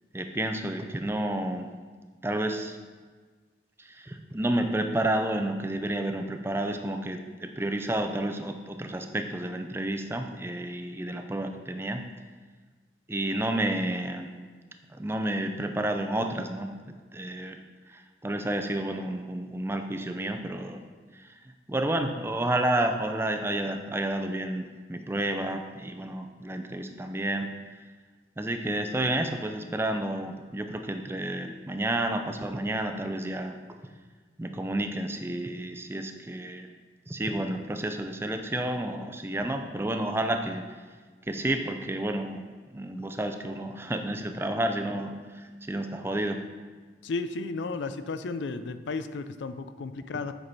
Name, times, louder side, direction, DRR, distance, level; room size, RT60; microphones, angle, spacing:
voice 1, 0.1-1.7 2.2-2.8 3.8-12.0 13.1-14.3 14.9-16.7 17.1-17.6 17.9-20.8 21.1-21.3 21.7-27.5 28.4-33.6 34.4-36.7 37.1-40.6 41.3-42.4 42.7-46.4, right 1 dB, 15° right, 6 dB, 0.4 m, -30 dB
voice 2, 47.0-50.3, left 3 dB, 80° left, 11 dB, 0.4 m, -33 dB
7.9 x 6.0 x 4.1 m, 1.4 s
head